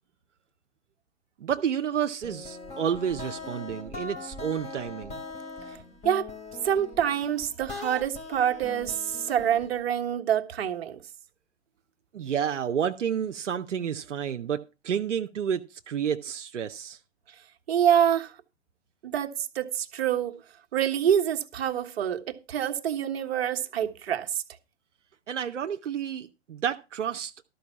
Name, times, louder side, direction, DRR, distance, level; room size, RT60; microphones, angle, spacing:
voice 1, 1.4-5.2 12.1-17.0 25.3-27.5, right 8 dB, 85° right, 0.8 m, -30 dB
sound 1, 2.2-9.8, left 3 dB, 20° left, 3.1 m, -41 dB
voice 2, 6.6-11.0 17.7-18.3 19.0-20.3 20.7-24.3, right 9 dB, 60° right, 1.4 m, -26 dB
13.0 x 5.4 x 7.0 m
hypercardioid pair, 125°, 35 cm